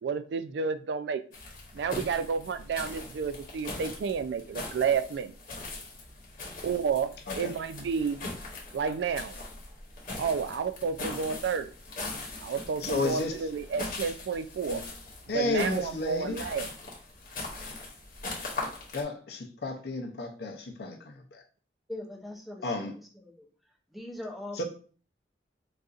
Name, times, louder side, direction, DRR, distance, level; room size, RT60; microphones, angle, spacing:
voice 1, 0.0-1.2 1.7-5.3 6.6-7.1 7.4-8.2 8.7-9.3 10.2-11.7 12.4-14.8 15.3-16.7, right 6 dB, 80° right, 0.3 m, -30 dB
sound 1, 1.3-19.0, left 2 dB, 50° left, 1.0 m, -41 dB
voice 2, 12.8-13.4 14.7-14.8 15.3-16.4 18.9-21.4 22.6-22.9 24.5-24.6, left 2 dB, 65° left, 0.6 m, -32 dB
voice 3, 21.9-23.5 23.9-24.6, left 1 dB, ahead, 0.5 m, -41 dB
4.0 x 2.5 x 2.4 m
head